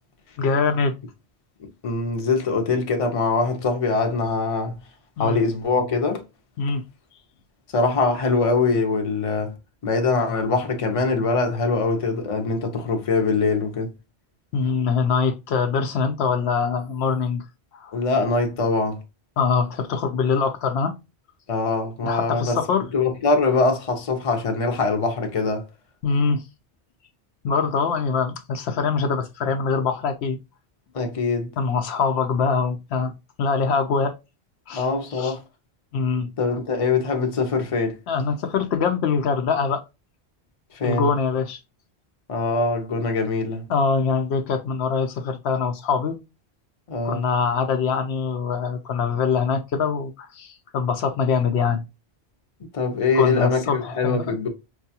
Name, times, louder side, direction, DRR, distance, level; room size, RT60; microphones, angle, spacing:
voice 1, 0.4-0.9 5.2-5.4 6.6-6.8 14.5-17.4 17.7-18.0 19.4-20.9 22.0-22.8 26.0-26.4 27.4-30.4 31.6-33.1 33.4-34.1 34.7-35.4 35.9-36.3 38.1-39.8 40.8-41.6 43.7-46.2 47.0-51.8 53.1-54.3, left 5 dB, 75° left, 0.8 m, -23 dB
voice 2, 1.6-4.8 5.2-6.2 7.7-9.6 9.8-13.9 17.9-19.0 21.5-22.6 22.9-25.6 30.9-31.5 34.7-35.4 36.4-38.0 40.7-41.1 42.3-43.7 46.9-47.2 52.7-54.5, left 3 dB, 35° left, 0.7 m, -23 dB
4.5 x 2.3 x 2.7 m
omnidirectional pair, 1.1 m